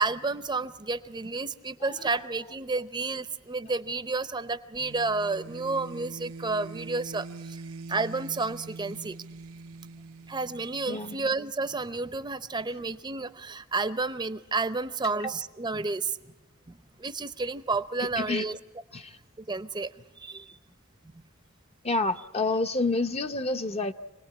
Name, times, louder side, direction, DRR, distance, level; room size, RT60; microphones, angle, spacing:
voice 1, 0.0-7.6 7.9-9.2 10.3-16.2 16.7-18.6 19.5-19.9 20.2-20.5, right 3 dB, 20° right, 13 dB, 0.7 m, -31 dB
sound 1, 4.7-11.4, right 3 dB, 80° right, 0.7 m, -43 dB
voice 2, 10.9-11.2 18.2-18.5 18.9-19.1 21.8-23.9, left 3 dB, 30° left, 8 dB, 0.7 m, -28 dB
26.5 x 19.0 x 8.6 m, 1.2 s
head